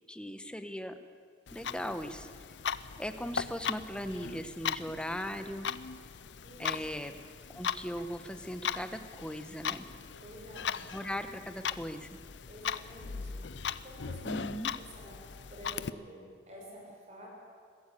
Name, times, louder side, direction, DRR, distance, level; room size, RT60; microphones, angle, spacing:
voice 1, 0.1-0.9 1.5-2.3 3.0-5.7 6.6-7.1 7.5-9.8 10.9-12.1 14.2-14.7, equal, 5° left, 9 dB, 1.1 m, -38 dB
Clock, 1.5-15.9, left 7 dB, 85° left, 0.6 m, -39 dB
voice 2, 6.4-7.1 10.2-10.9 12.5-17.3, equal, 40° right, -2 dB, 6.3 m, -50 dB
22.5 x 15.0 x 8.5 m, 2.3 s
head